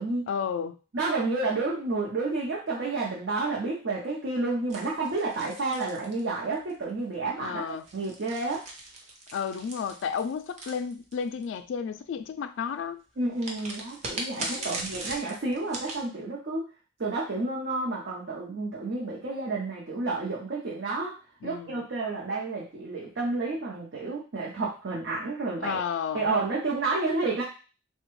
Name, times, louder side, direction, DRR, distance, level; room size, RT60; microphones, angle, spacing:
voice 1, 0.3-0.8 7.4-7.8 9.3-13.0 14.6-14.9 21.4-21.9 25.6-26.3, left 7 dB, 85° left, 10 dB, 0.3 m, -32 dB
voice 2, 0.9-7.6 7.9-8.6 13.2-16.6 17.0-25.8 26.1-27.4, right 3 dB, 75° right, -4 dB, 0.6 m, -30 dB
sound 1, 4.7-6.7 7.7-11.4 13.4-16.0, right 2 dB, 40° right, 0.6 m, -39 dB
3.3 x 2.2 x 3.1 m, 0.35 s
head